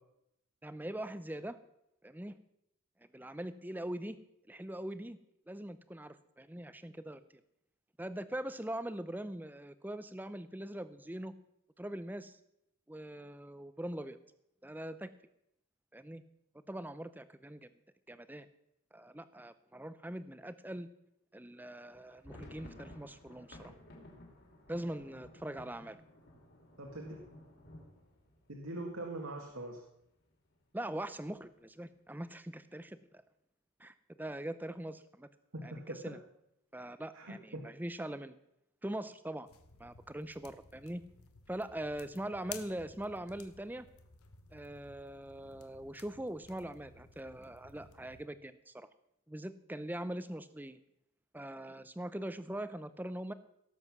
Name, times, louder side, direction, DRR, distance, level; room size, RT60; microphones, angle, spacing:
voice 1, 0.6-1.6 2.0-2.4 3.1-4.2 4.5-5.2 5.5-7.2 8.0-11.3 11.8-12.4 12.9-14.2 14.6-15.1 15.9-16.2 16.7-17.7 18.1-18.5 18.9-20.9 21.3-23.8 24.7-26.0 30.7-33.0 33.8-35.3 35.6-36.2 36.7-38.4 38.8-39.5 39.8-41.0 41.5-43.9 44.5-48.9 49.3-50.8 51.3-53.3, right 1 dB, 10° right, 13 dB, 0.5 m, -42 dB
sound 1, 21.9-29.6 29.9-30.0 30.3-30.5 31.1-31.6, left 1 dB, 50° left, 2.9 m, -55 dB
voice 2, 26.8-27.2 28.5-29.8 35.5-36.2 37.1-37.6, right 2 dB, 70° right, 1 dB, 1.8 m, -42 dB
sound 2, 39.5-48.3, left 7 dB, 85° left, 1.2 m, -55 dB
17.5 x 7.8 x 6.1 m, 0.80 s
head